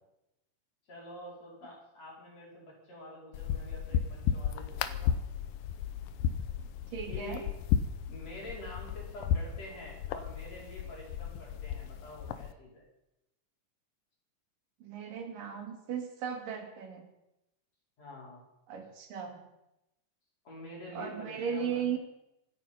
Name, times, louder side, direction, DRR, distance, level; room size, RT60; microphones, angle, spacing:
voice 1, 0.9-5.2 7.1-7.5 8.1-12.8 18.0-18.4 20.4-21.8, left 1 dB, 50° left, -3 dB, 6.2 m, -47 dB
sound 1, 3.3-12.5, left 9 dB, 85° left, 2.5 m, -34 dB
voice 2, 6.9-7.4 14.8-17.1 18.7-19.4 20.9-22.0, right 7 dB, 75° right, 4 dB, 3.7 m, -36 dB
25.5 x 9.2 x 5.6 m, 0.91 s
omnidirectional pair, 3.9 m